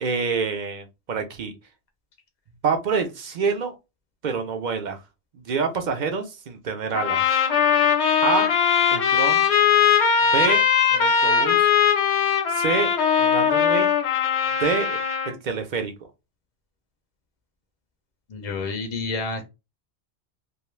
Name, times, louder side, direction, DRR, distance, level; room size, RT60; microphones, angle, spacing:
voice 1, 0.0-1.5 2.6-3.7 4.2-5.0 5.5-7.3 8.2-8.5 8.9-9.5 10.2-10.6 10.9-11.7 12.5-12.9 13.2-13.9 14.6-15.0 15.3-15.9, right 5 dB, 55° right, 0.6 m, -26 dB
sound 1, 6.9-15.3, left 7 dB, 85° left, 1.0 m, -20 dB
voice 2, 18.3-19.4, left 3 dB, 50° left, 0.5 m, -29 dB
2.3 x 2.2 x 3.1 m
omnidirectional pair, 1.1 m